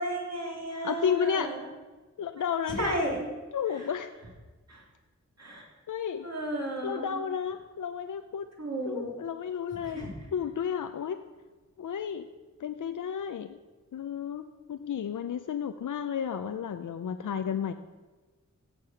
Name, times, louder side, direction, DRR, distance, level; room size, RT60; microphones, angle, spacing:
voice 1, 0.0-1.7 2.3-3.3 3.7-3.8 4.7-4.8 5.4-5.6 6.2-7.2 8.6-9.1 9.8-10.1, right 1 dB, 60° right, -2 dB, 3.3 m, -33 dB
voice 2, 0.8-1.5 2.2-3.0 3.5-4.1 5.9-6.3 6.8-8.4 8.8-11.2 11.8-12.3 12.6-13.6 13.9-17.7, left 7 dB, 85° left, 9 dB, 0.5 m, -32 dB
16.0 x 6.7 x 5.7 m, 1.2 s
wide cardioid pair, 65°, 30 cm